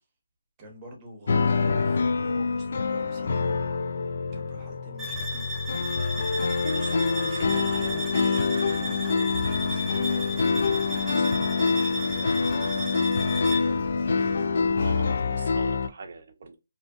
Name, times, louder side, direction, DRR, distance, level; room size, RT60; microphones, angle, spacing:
voice 1, 0.6-3.4 4.3-5.5 6.8-12.9 13.6-13.9, right 1 dB, 20° right, 1.1 m, -45 dB
sound 1, 1.3-15.9, left 4 dB, 55° left, 0.4 m, -26 dB
sound 2, 5.0-13.8, left 1 dB, ahead, 0.5 m, -34 dB
voice 2, 6.7-7.9 14.8-16.5, right 4 dB, 45° right, 0.5 m, -42 dB
sound 3, 7.7-15.2, left 1 dB, 30° left, 1.4 m, -43 dB
2.7 x 2.4 x 2.3 m
hypercardioid pair, 165°, 0 cm